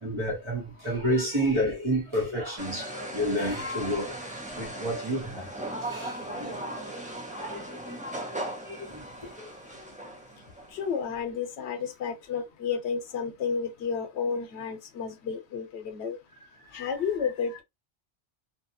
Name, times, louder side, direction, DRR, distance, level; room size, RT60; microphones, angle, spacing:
voice 1, 0.0-5.5 5.8-6.9 7.3-9.5 16.6-16.9, equal, 30° right, 1.0 m, -31 dB
sound 1, 2.6-11.0, right 1 dB, 10° right, 0.4 m, -38 dB
voice 2, 10.7-16.2 16.7-17.6, left 6 dB, 90° left, 0.9 m, -31 dB
2.7 x 2.2 x 2.6 m
omnidirectional pair, 1.1 m